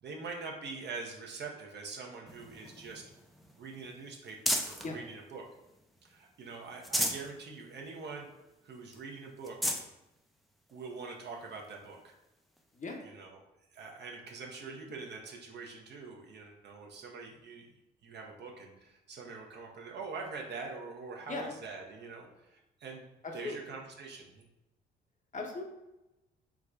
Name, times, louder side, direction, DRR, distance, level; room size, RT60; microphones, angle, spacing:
voice 1, 0.0-3.0 3.6-4.4 4.6-5.5 6.0-8.3 8.6-9.6 10.7-12.1 13.0-13.4 13.7-17.7 18.0-23.0 23.3-24.4, right 4 dB, 55° right, 0 dB, 0.8 m, -44 dB
sound 1, 2.3-4.9 5.4-6.2 6.6-7.3 7.8-7.9 8.2-8.3 8.9-9.0 9.4-9.9 10.7-10.8 12.6-12.7, equal, ahead, 0.5 m, -35 dB
voice 2, 23.2-23.6 25.3-25.6, left 3 dB, 35° left, 1 dB, 0.8 m, -38 dB
4.7 x 2.2 x 2.4 m, 0.97 s
supercardioid pair, 60°, 21 cm